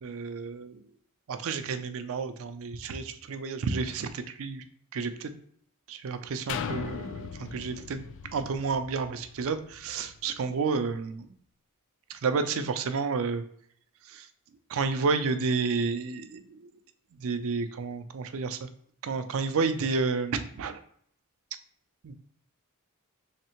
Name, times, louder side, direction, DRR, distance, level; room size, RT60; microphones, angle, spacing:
voice 1, 0.0-0.8 1.3-4.6 4.9-5.3 5.9-11.3 12.2-13.4 14.1-14.2 14.7-16.6 17.2-18.7 19.0-20.8 22.0-22.1, right 4 dB, 65° right, 9 dB, 0.4 m, -30 dB
sound 1, 6.5-10.3 10.8-10.9, left 7 dB, 60° left, 0.3 m, -39 dB
3.4 x 3.2 x 2.9 m, 0.64 s
head